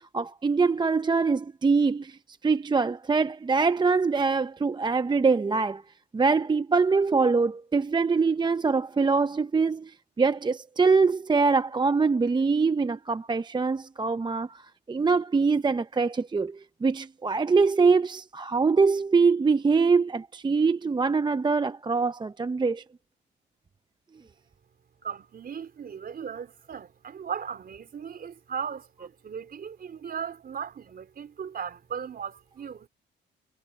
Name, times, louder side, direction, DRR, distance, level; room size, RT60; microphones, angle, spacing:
voice 1, 0.0-5.8 6.1-22.8, right 4 dB, 20° right, 0.6 m, -24 dB
voice 2, 25.0-32.9, right 7 dB, 50° right, 4.0 m, -37 dB
cardioid pair, 90°, 20 cm